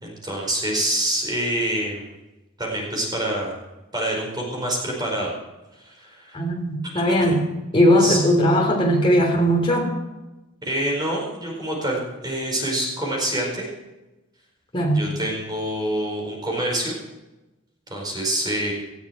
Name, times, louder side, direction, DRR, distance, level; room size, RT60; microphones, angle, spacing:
voice 1, 0.0-2.1 2.6-3.5 3.9-5.3 5.8-6.4 7.2-7.3 8.0-8.2 10.6-13.7 14.9-17.0 17.9-18.7, right 1 dB, 20° right, -2 dB, 4.8 m, -26 dB
voice 2, 6.3-7.4 7.7-9.9 14.7-15.0, equal, 25° left, 0 dB, 3.4 m, -19 dB
18.5 x 13.5 x 4.5 m, 1.0 s
head